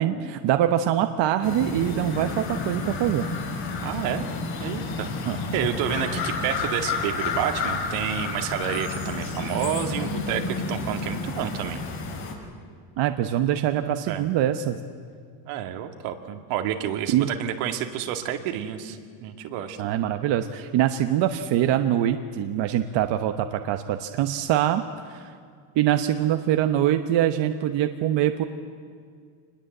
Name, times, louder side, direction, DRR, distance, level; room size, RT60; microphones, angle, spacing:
voice 1, 0.0-3.3 5.2-5.4 13.0-14.8 17.1-17.3 19.8-25.3 25.7-28.4, right 11 dB, 60° right, 7 dB, 1.1 m, -24 dB
sound 1, 1.4-12.3, left 4 dB, 65° left, 5.9 m, -30 dB
voice 2, 3.8-4.2 4.6-5.1 5.5-11.8 14.1-14.2 15.4-19.8, right 10 dB, 85° right, 5 dB, 2.3 m, -29 dB
26.0 x 21.0 x 7.9 m, 2.1 s
cardioid pair, 125°, 49 cm